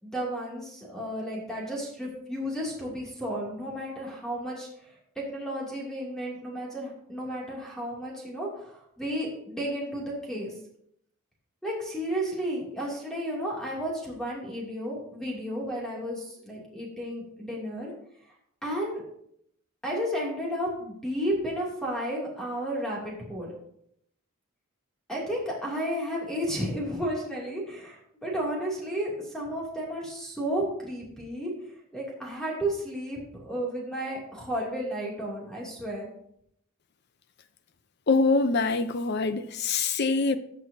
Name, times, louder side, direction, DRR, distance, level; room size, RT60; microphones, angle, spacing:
voice 1, 0.0-10.5 11.6-17.9 18.6-19.0 19.8-23.5 25.1-31.5 31.9-36.1, equal, 5° left, 2.7 m, -33 dB
voice 2, 38.1-40.4, left 3 dB, 50° left, 0.7 m, -24 dB
19.0 x 6.4 x 2.8 m
head